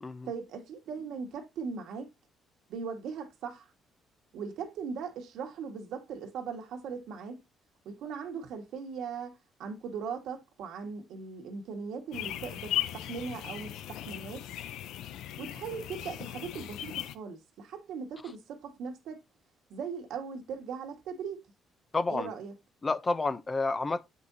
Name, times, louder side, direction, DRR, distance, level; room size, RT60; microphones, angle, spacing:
voice 1, 0.3-2.1 2.7-3.7 4.3-7.4 7.8-14.5 15.4-19.2 19.7-21.4 22.1-22.5, right 6 dB, 80° right, 1.6 m, -39 dB
sound 1, 12.1-17.1, left 12 dB, 85° left, 0.6 m, -37 dB
voice 2, 21.9-22.3 22.8-24.0, left 3 dB, 25° left, 0.6 m, -30 dB
8.0 x 5.4 x 2.7 m
cardioid pair, 115°, 0 cm